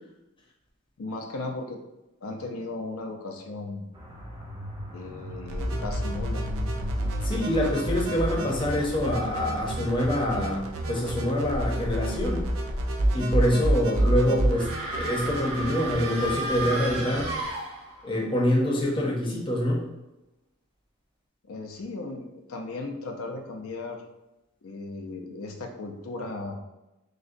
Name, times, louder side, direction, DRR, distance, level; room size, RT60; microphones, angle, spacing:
voice 1, 1.0-1.8 2.2-3.9 4.9-6.4 14.0-14.1 21.5-24.0 24.6-26.6, left 2 dB, 80° left, 3 dB, 0.5 m, -36 dB
sound 1, 3.9-17.8, equal, 20° right, 0.6 m, -42 dB
sound 2, 5.5-17.5, right 1 dB, 75° right, 0.5 m, -29 dB
voice 2, 7.2-12.4 13.1-17.3 18.0-19.8, left 1 dB, 25° left, -2 dB, 0.7 m, -26 dB
sound 3, 14.5-18.2, right 1 dB, 45° right, 1.0 m, -33 dB
6.3 x 2.2 x 2.5 m, 0.98 s
head